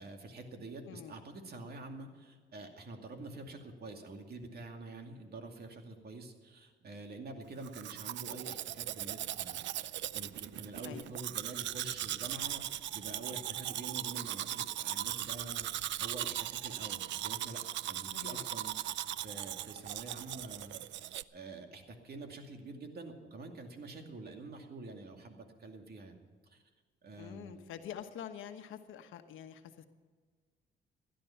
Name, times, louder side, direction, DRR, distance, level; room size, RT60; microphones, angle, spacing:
voice 1, 0.0-17.6 17.9-26.2 26.4-26.6 27.0-27.7, right 2 dB, 50° right, 4 dB, 2.4 m, -47 dB
Domestic sounds home sounds, 7.6-21.2, right 13 dB, 65° right, 0.5 m, -39 dB
voice 2, 18.1-18.5 27.2-29.8, left 9 dB, 80° left, 7 dB, 1.2 m, -46 dB
16.5 x 11.5 x 5.8 m, 1.5 s
cardioid pair, 90°, 20 cm